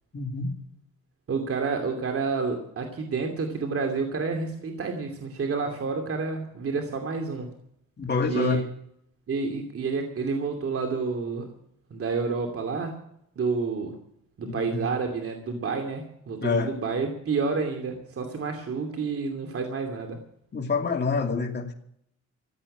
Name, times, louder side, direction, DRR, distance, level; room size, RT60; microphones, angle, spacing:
voice 1, 0.1-0.5 8.0-8.6 14.4-14.8 16.4-16.7 20.5-21.7, left 4 dB, 35° left, 1 dB, 2.5 m, -27 dB
voice 2, 1.3-7.5 8.3-8.6 9.3-11.5 11.9-12.9 13.4-13.9 14.4-20.2, right 4 dB, 50° right, 4 dB, 2.7 m, -29 dB
15.0 x 8.9 x 9.9 m, 0.70 s
cardioid pair, 90°, 30 cm